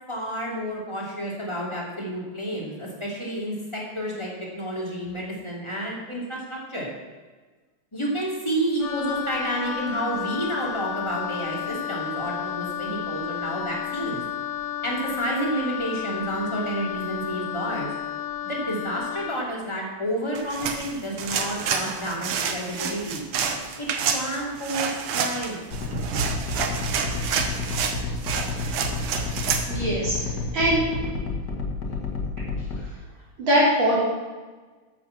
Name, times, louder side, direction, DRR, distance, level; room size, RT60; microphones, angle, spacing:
voice 1, 0.1-6.9 7.9-14.2 14.8-17.9 18.4-23.2 23.8-23.9 24.1-25.6, right 1 dB, 10° left, -4 dB, 2.9 m, -30 dB
Wind instrument woodwind instrument, 8.8-19.4, left 10 dB, 85° left, 2.2 m, -32 dB
sound 1, 20.3-29.7, right 6 dB, 85° right, 2.0 m, -28 dB
sound 2, 25.7-32.8, left 3 dB, 50° left, 2.1 m, -29 dB
voice 2, 29.7-30.8 33.4-34.0, equal, 60° right, -9 dB, 5.2 m, -22 dB
13.0 x 7.8 x 6.1 m, 1.3 s
omnidirectional pair, 2.4 m